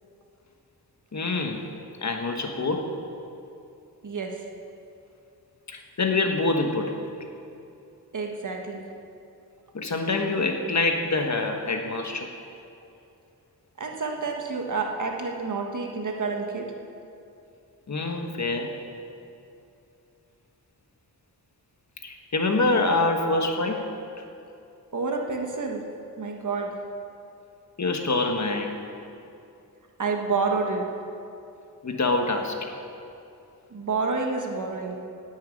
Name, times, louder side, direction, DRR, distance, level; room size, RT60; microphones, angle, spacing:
voice 1, 1.1-1.6 2.0-2.9 5.7-7.0 9.7-12.3 17.9-18.7 22.0-23.8 27.8-28.8 31.8-32.7, left 3 dB, 50° left, 3 dB, 1.3 m, -25 dB
voice 2, 4.0-4.4 8.1-8.8 13.8-16.7 24.9-25.8 26.2-26.7 30.0-30.9 33.7-35.0, right 4 dB, 55° right, 2 dB, 1.5 m, -29 dB
9.7 x 9.2 x 9.2 m, 2.7 s
wide cardioid pair, 130°, 37 cm